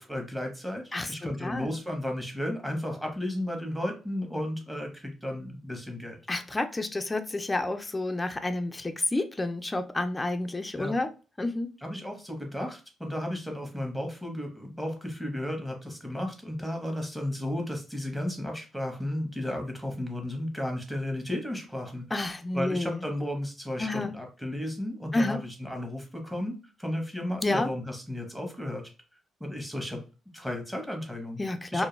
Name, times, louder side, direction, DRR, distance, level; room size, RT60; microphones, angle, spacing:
voice 1, 0.1-6.2 10.7-11.0 11.8-22.0 22.5-28.9 29.4-30.0 30.3-31.4 31.7-31.9, left 1 dB, 5° right, 0.8 m, -34 dB
voice 2, 0.9-1.7 6.3-11.1 11.4-11.7 22.1-23.0 23.8-24.1 25.1-25.4 27.4-27.7 31.4-31.9, left 2 dB, 15° left, 0.3 m, -29 dB
2.2 x 2.1 x 3.0 m
cardioid pair, 90°, 0 cm